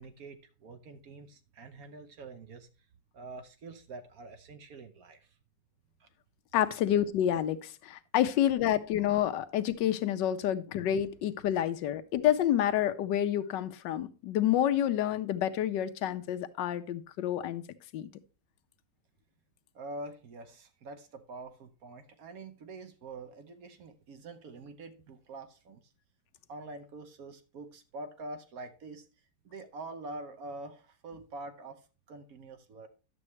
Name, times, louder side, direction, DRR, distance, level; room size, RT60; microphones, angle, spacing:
voice 1, 0.0-2.7 3.1-5.3 6.0-6.1 19.7-25.8 26.5-29.1 29.4-32.9, right 2 dB, 60° right, 1.2 m, -45 dB
voice 2, 6.5-17.6 17.9-18.1, left 11 dB, 85° left, 1.3 m, -28 dB
11.0 x 7.0 x 3.1 m
omnidirectional pair, 1.9 m